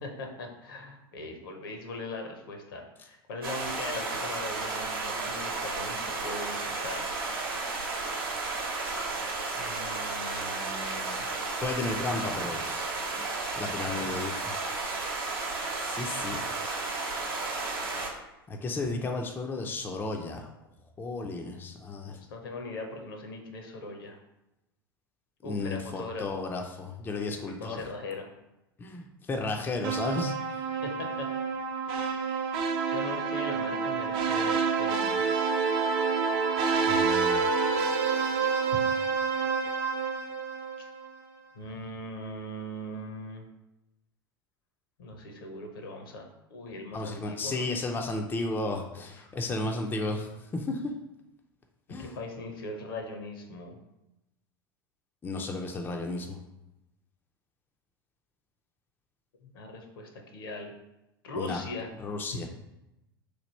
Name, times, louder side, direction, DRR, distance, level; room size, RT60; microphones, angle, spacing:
voice 1, 0.0-7.1 9.6-11.3 13.9-14.2 22.3-24.2 25.4-26.5 27.5-28.3 30.8-30.9 31.2-31.3 32.9-35.6 41.5-43.5 45.0-47.6 49.2-49.3 51.9-53.8 59.4-60.7 61.2-61.9 62.3-62.5, left 2 dB, 65° left, 3 dB, 0.8 m, -40 dB
sound 1, 3.4-18.1, right 3 dB, 70° right, 0.9 m, -33 dB
voice 2, 11.6-12.9 13.6-14.5 14.8-15.1 15.8-16.4 18.5-20.5 21.0-22.2 25.4-27.8 28.8-30.3 36.8-37.6 46.9-50.9 51.9-52.2 55.2-56.4 61.4-61.6 62.0-62.5, left 3 dB, 15° left, 2 dB, 0.4 m, -33 dB
sound 2, 29.8-41.1, right 5 dB, 45° right, 0.5 m, -28 dB
3.2 x 2.3 x 4.2 m, 0.93 s
figure-of-eight pair, 80°, 12 cm